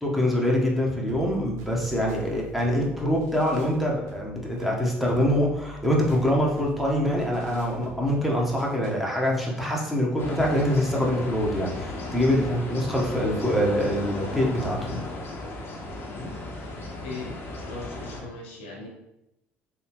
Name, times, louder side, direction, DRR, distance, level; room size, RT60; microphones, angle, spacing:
voice 1, 0.0-15.0, equal, 5° right, -3 dB, 0.9 m, -24 dB
sound 1, 1.1-9.1, right 3 dB, 70° right, 0.7 m, -45 dB
sound 2, 10.2-18.2, left 2 dB, 45° left, 0.8 m, -35 dB
voice 2, 17.0-18.9, left 3 dB, 90° left, -2 dB, 0.9 m, -39 dB
3.5 x 2.3 x 2.9 m, 0.88 s
supercardioid pair, 75°, 6 cm